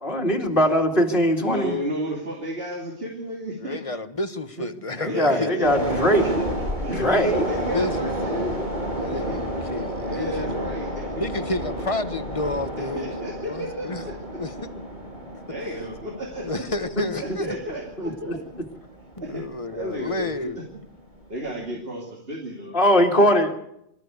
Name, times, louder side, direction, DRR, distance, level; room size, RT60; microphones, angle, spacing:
voice 1, 0.0-1.8 5.0-6.3 7.0-7.5 17.0-17.4 18.0-18.3 22.7-23.5, equal, 55° left, 2.6 m, -21 dB
voice 2, 1.4-3.8 4.6-4.7 4.9-5.7 6.1-6.5 6.8-8.6 9.1-9.4 10.0-11.2 12.8-14.4 15.5-16.5 17.2-18.4 19.2-19.5 19.7-20.6 21.3-22.8, equal, 60° right, 3.2 m, -32 dB
voice 3, 3.6-5.8 7.7-8.5 9.0-10.6 11.2-14.1 14.4-14.7 16.4-17.6 19.2-20.6, left 2 dB, 30° left, 1.3 m, -30 dB
sound 1, 5.6-20.2 20.5-20.7, equal, 45° right, 6.4 m, -31 dB
25.0 x 14.0 x 8.2 m
omnidirectional pair, 1.1 m